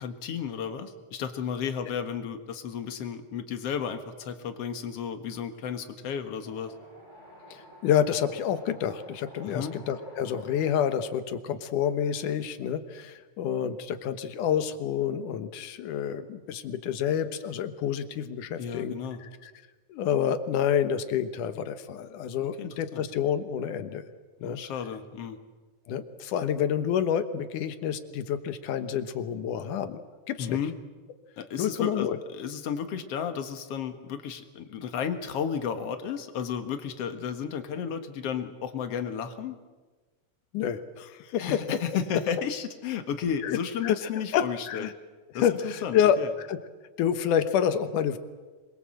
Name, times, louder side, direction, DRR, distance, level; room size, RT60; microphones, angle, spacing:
voice 1, 0.0-6.7 9.4-9.7 18.6-19.2 22.4-23.1 24.4-25.4 30.4-30.7 31.4-39.6 41.4-44.9 45.3-46.3, left 7 dB, 55° left, 8 dB, 2.4 m, -33 dB
Wind, 6.4-11.0, right 1 dB, 20° right, 5.6 m, -51 dB
voice 2, 7.5-19.5 19.9-24.0 24.4-24.6 25.9-30.0 30.3-30.6 31.6-32.2 40.5-41.6 43.4-44.9 45.3-46.6 47.0-48.2, left 9 dB, 90° left, 10 dB, 2.7 m, -28 dB
26.0 x 22.0 x 7.8 m, 1.3 s
omnidirectional pair, 3.5 m